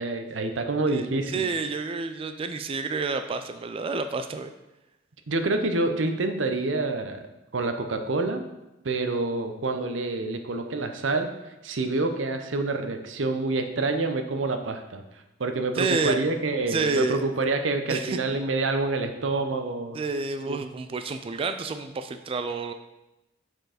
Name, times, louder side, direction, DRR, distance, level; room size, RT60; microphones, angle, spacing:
voice 1, 0.0-1.5 5.3-7.2 7.5-8.4 8.8-11.3 11.6-15.0 15.4-20.0 20.5-20.6, right 3 dB, 90° right, 6 dB, 0.7 m, -27 dB
voice 2, 0.9-4.5 15.8-16.2 16.7-17.2 17.9-18.2 19.9-22.7, right 4 dB, 30° right, 8 dB, 0.3 m, -29 dB
6.3 x 4.5 x 4.9 m, 0.96 s
head